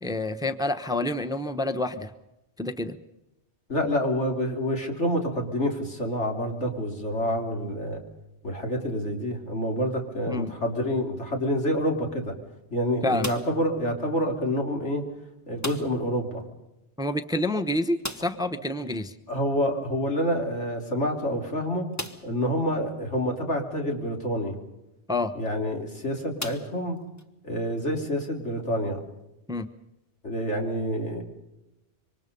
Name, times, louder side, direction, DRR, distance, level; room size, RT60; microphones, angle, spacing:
voice 1, 0.0-2.1 2.6-3.0 10.3-10.5 13.0-13.3 17.0-19.1 25.1-25.3 29.5-29.7, left 1 dB, 5° right, 10 dB, 0.9 m, -28 dB
voice 2, 3.7-8.0 8.4-12.4 12.7-15.0 15.5-16.4 19.3-21.9 22.2-24.5 25.4-27.0 27.4-29.0 30.2-31.2, equal, 85° left, 2 dB, 3.7 m, -27 dB
sound 1, 13.2-13.7 15.6-16.1 16.4-16.5 16.8-16.9 18.0-18.5 20.3-20.4 21.0-21.1 21.9-22.4 23.2-23.3 25.3-25.5 26.4-27.3, left 1 dB, 15° left, 1.2 m, -37 dB
26.5 x 24.0 x 5.4 m, 0.91 s
omnidirectional pair, 1.2 m